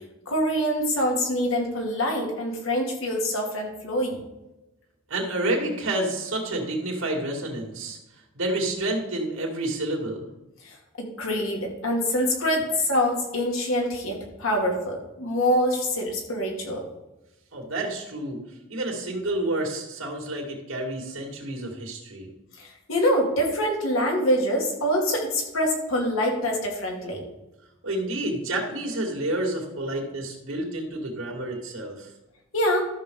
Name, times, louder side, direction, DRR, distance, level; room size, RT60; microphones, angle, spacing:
voice 1, 0.3-4.2 10.6-16.9 22.6-27.2 32.5-32.8, equal, 85° left, 0 dB, 2.7 m, -25 dB
voice 2, 5.1-8.0 8.3-10.3 17.5-18.4 18.7-22.3 27.8-32.1, right 1 dB, 90° right, -1 dB, 2.5 m, -29 dB
13.5 x 6.4 x 3.8 m, 0.97 s
head